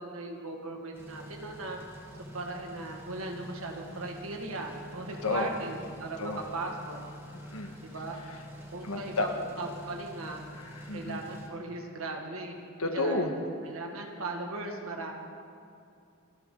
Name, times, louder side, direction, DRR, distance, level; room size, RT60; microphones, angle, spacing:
voice 1, 0.0-1.8 2.3-7.0 7.8-8.2 8.7-10.4 10.9-12.5 12.9-13.3 13.7-15.1, right 2 dB, 70° right, 2 dB, 2.0 m, -38 dB
sound 1, 0.9-11.5, equal, 10° right, 1.8 m, -47 dB
voice 2, 7.3-7.8 8.8-9.3 10.5-11.2 12.8-13.3, left 2 dB, 85° left, 4 dB, 1.6 m, -31 dB
28.5 x 10.5 x 4.0 m, 2.4 s
head